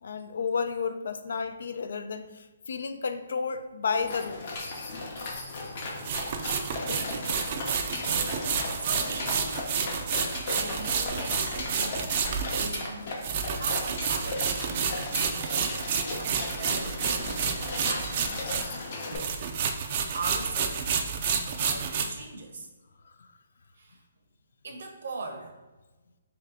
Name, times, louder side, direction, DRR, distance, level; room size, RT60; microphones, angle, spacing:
voice 1, 0.0-4.5 7.2-7.4 8.5-8.7 12.4-12.6 20.2-20.4 23.0-23.3, left 5 dB, 65° left, 9 dB, 0.3 m, -32 dB
sound 1, 3.9-19.2, left 3 dB, 40° left, 0.7 m, -37 dB
sound 2, 4.5-4.6 6.0-18.9 19.1-22.0, right 6 dB, 35° right, 0.3 m, -30 dB
voice 2, 8.8-9.7 10.5-12.1 12.6-13.1 13.5-15.8 16.1-18.3 19.1-19.3 20.1-20.8 21.4-22.7 23.7-24.0 24.6-25.5, right 3 dB, 65° right, 3 dB, 0.8 m, -40 dB
3.2 x 2.8 x 3.7 m, 1.2 s
hypercardioid pair, 165°, 0 cm